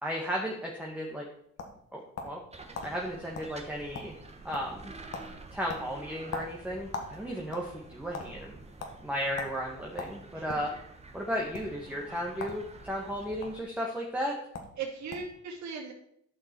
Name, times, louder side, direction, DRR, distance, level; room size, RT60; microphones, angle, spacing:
voice 1, 0.0-1.3 1.9-2.4 2.8-4.1 4.4-4.9 5.5-8.6 9.0-10.7 11.1-14.4, equal, 5° right, -2 dB, 1.6 m, -34 dB
sound 1, 1.0-2.4 2.7-2.9 3.3-3.5 3.8-4.3 4.5-4.8 5.1-5.3 5.7-7.1 7.4-8.3 8.8-8.9 9.4-9.5 10.0-10.7 11.4-11.6 12.3-12.6 12.9-13.5 14.2-14.3 14.5-14.7 15.1-15.4, left 4 dB, 55° left, 1.8 m, -39 dB
sound 2, 2.5-13.6, right 3 dB, 20° right, 1.4 m, -49 dB
voice 2, 10.3-10.7 14.8-15.9, right 5 dB, 70° right, 0 dB, 2.7 m, -38 dB
11.0 x 5.9 x 4.5 m, 0.71 s
cardioid pair, 90°, 30 cm